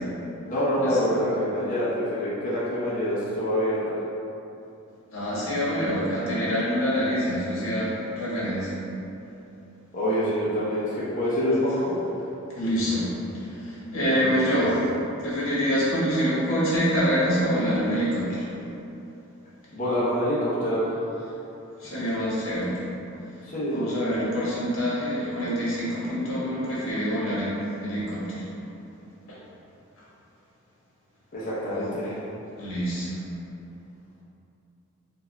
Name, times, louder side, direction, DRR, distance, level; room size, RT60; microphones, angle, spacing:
voice 1, 0.4-3.9 9.9-12.2 14.0-14.6 19.7-21.0 23.4-23.8 31.3-32.2, equal, 40° left, -10 dB, 0.8 m, -26 dB
voice 2, 5.1-8.7 12.5-14.7 15.2-18.5 21.8-22.8 23.7-28.4 31.7-31.9 32.6-33.2, equal, 85° left, -9 dB, 1.4 m, -26 dB
4.6 x 2.6 x 3.3 m, 2.9 s
head